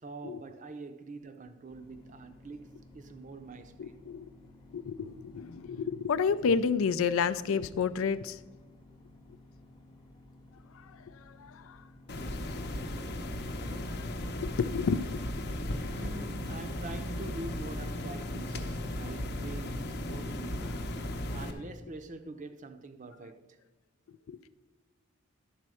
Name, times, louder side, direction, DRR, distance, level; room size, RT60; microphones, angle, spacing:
voice 1, 0.0-4.0 12.2-12.5 13.7-13.9 15.7-20.9 21.3-23.6, right 3 dB, 40° right, 0.6 m, -45 dB
sound 1, 1.7-21.5, left 1 dB, 20° left, 0.9 m, -56 dB
voice 2, 3.8-4.3 4.7-8.4 10.8-11.0 11.4-11.8 14.0-14.1 14.4-15.8 24.3-24.5, left 5 dB, 80° left, 0.4 m, -31 dB
sound 2, 12.1-21.5, left 1 dB, 55° left, 0.7 m, -36 dB
11.0 x 4.3 x 6.2 m
head